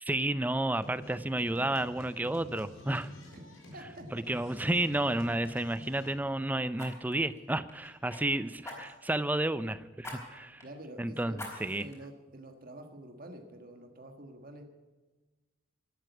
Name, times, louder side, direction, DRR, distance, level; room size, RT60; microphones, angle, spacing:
voice 1, 0.0-3.1 4.1-10.6 11.0-11.9, right 1 dB, 10° right, 15 dB, 0.5 m, -31 dB
sound 1, 0.8-6.1, left 1 dB, 75° left, 4.3 m, -48 dB
voice 2, 3.7-4.2 10.6-14.6, right 1 dB, 45° right, 5 dB, 1.6 m, -48 dB
Fire, 4.1-4.3 4.6-4.8 6.7-8.2 8.6-9.2 10.0-10.2 10.6-10.7 11.3-12.0 12.5-12.6, left 1 dB, 15° left, 4.3 m, -45 dB
13.0 x 12.5 x 8.1 m, 1.2 s
head